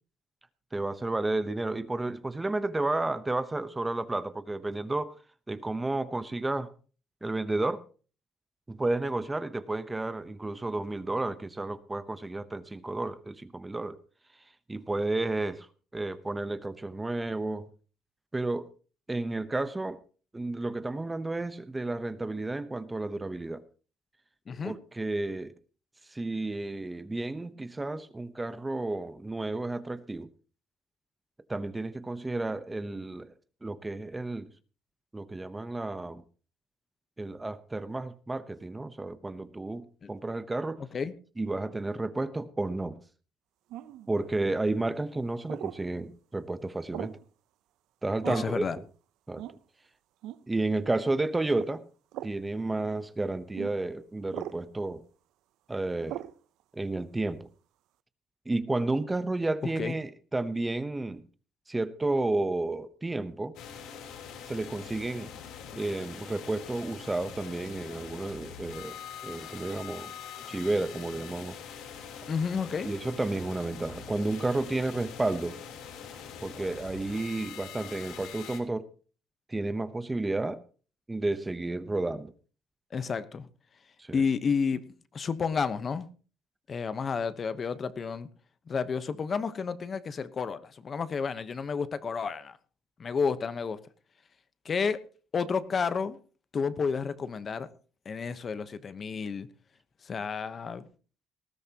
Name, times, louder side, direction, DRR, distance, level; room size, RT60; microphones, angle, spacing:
voice 1, 0.7-5.1 5.5-6.7 7.2-7.8 8.7-14.0 14.7-15.7 15.9-17.7 18.3-18.7 19.1-20.0 20.3-23.6 24.6-25.5 26.1-30.3 31.5-33.3 33.6-34.5 35.1-36.2 37.2-40.8 41.4-43.0 44.1-47.2 48.0-48.8 49.3-49.4 50.5-51.8 52.2-55.0 55.7-56.2 56.7-57.5 58.5-61.2 61.7-63.5 64.5-65.3 65.7-69.0 69.2-70.1 70.5-71.6 72.8-75.6 76.4-78.9 79.5-80.6 81.1-82.3 84.0-84.2, right 2 dB, 10° right, 0.9 m, -32 dB
sound 1, 43.7-44.1 45.5-45.8 46.9-47.3 48.2-48.6 49.4-49.6 50.2-50.4 51.5-51.7 52.1-52.4 53.6-53.7 54.3-54.6 56.1-56.4, right 13 dB, 75° right, 0.7 m, -39 dB
voice 2, 48.3-48.8 59.8-59.9 72.3-72.9 82.9-83.5 84.1-84.8 85.1-86.1 86.7-88.3 88.7-92.6 93.0-93.8 94.6-95.0 95.3-96.2 96.5-97.7 98.0-99.5 100.0-100.9, left 5 dB, 35° left, 1.0 m, -31 dB
sound 2, 63.5-78.6, left 8 dB, 75° left, 3.5 m, -44 dB
19.5 x 15.0 x 2.9 m
cardioid pair, 130°, 0 cm